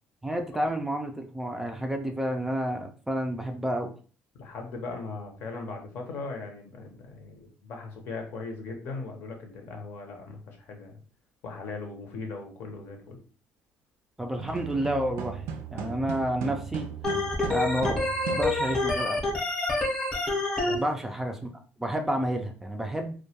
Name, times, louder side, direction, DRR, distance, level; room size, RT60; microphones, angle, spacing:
voice 1, 0.2-3.9 14.2-15.4 15.7-16.9 17.5-18.0 18.3-19.2 20.7-21.5 21.8-23.1, right 1 dB, 10° right, 3 dB, 0.3 m, -30 dB
voice 2, 4.4-11.0 11.4-13.2 20.6-20.8, left 3 dB, 65° left, 3 dB, 0.7 m, -39 dB
sound 1, 14.3-19.0, right 7 dB, 85° right, 0.4 m, -37 dB
Organ, 17.0-20.8, left 2 dB, 20° left, 0.7 m, -27 dB
2.2 x 2.1 x 2.7 m, 0.38 s
cardioid pair, 130°, 4 cm